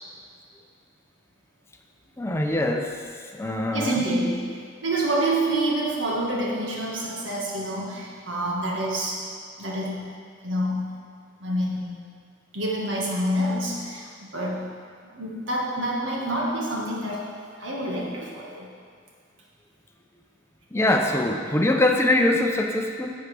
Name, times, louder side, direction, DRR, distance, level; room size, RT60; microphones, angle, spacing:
voice 1, 2.2-4.0 20.7-23.1, left 1 dB, 15° left, 2 dB, 0.6 m, -23 dB
voice 2, 3.7-9.3 9.6-11.0 11.4-12.0 12.5-14.8 15.1-17.3 17.6-18.7, right 1 dB, 80° right, -3 dB, 1.6 m, -27 dB
11.0 x 7.3 x 3.4 m, 2.1 s
head